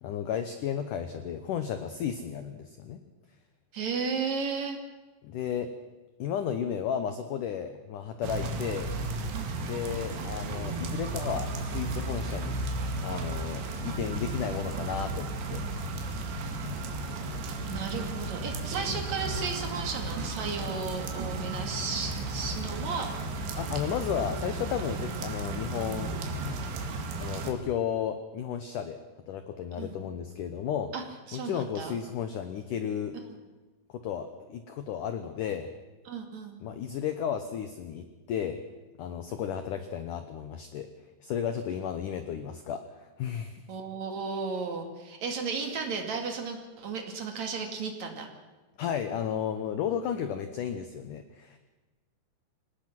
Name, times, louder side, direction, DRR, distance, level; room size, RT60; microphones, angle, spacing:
voice 1, 0.0-3.0 5.2-5.7 6.2-8.9 9.6-12.5 13.0-15.6 23.6-26.1 27.2-29.0 29.3-30.9 31.3-33.2 33.9-35.7 36.6-38.6 39.0-40.9 41.2-43.6 48.8-51.6, left 8 dB, 80° left, 9 dB, 1.8 m, -33 dB
voice 2, 3.7-4.8 9.3-9.6 17.7-23.1 29.8-30.0 30.9-31.0 31.3-32.0 36.1-36.6 43.7-48.3, right 5 dB, 45° right, 4 dB, 3.1 m, -34 dB
sound 1, 8.2-27.5, right 2 dB, 75° right, 4.3 m, -34 dB
25.0 x 19.0 x 6.1 m, 1.2 s
omnidirectional pair, 5.1 m